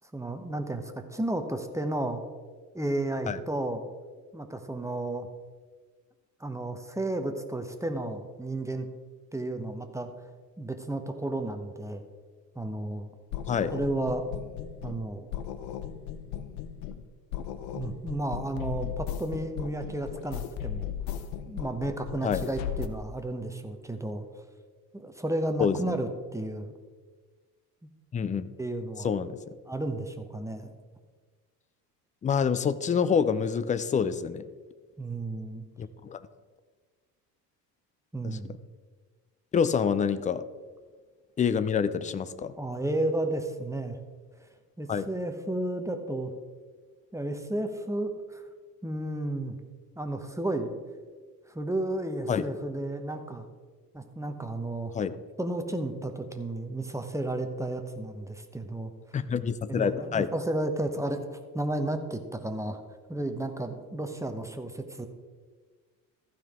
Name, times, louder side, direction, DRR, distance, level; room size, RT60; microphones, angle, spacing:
voice 1, 0.1-2.2 2.7-3.8 4.3-5.3 6.4-8.9 9.3-10.1 10.6-12.0 12.5-13.1 13.7-14.2 14.8-15.3 17.7-20.9 21.5-24.3 24.9-26.7 28.6-29.1 29.7-30.7 35.0-35.6 38.1-38.6 42.6-44.0 44.8-46.3 47.1-48.4 48.8-49.5 50.0-50.7 51.5-53.5 53.9-55.0 55.4-58.9 59.7-62.8 63.1-65.1, right 1 dB, 5° right, 6 dB, 1.0 m, -32 dB
sound 1, 13.3-15.0 15.3-17.0 17.3-22.9, left 10 dB, 65° left, 0.9 m, -36 dB
voice 2, 25.6-26.0 28.1-28.5 29.0-29.4 32.2-34.4 35.8-36.2 38.2-38.4 39.5-40.4 41.4-42.5 44.9-45.1 52.3-52.5 54.9-55.2 59.1-60.3, left 6 dB, 15° left, 14 dB, 0.4 m, -27 dB
14.5 x 5.8 x 3.7 m, 1.4 s
hypercardioid pair, 60°, 49 cm